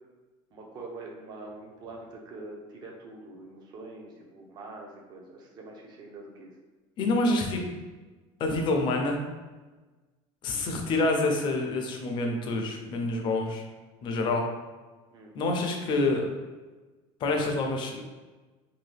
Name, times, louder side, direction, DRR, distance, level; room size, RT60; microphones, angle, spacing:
voice 1, 0.5-6.5 15.1-15.3, right 2 dB, 35° right, 0 dB, 0.5 m, -44 dB
voice 2, 7.0-7.6 8.4-9.2 10.4-13.6 14.0-14.4 15.3-16.3 17.2-18.1, left 2 dB, 40° left, 2 dB, 0.5 m, -27 dB
2.7 x 2.2 x 3.3 m, 1.3 s
cardioid pair, 150°, 13 cm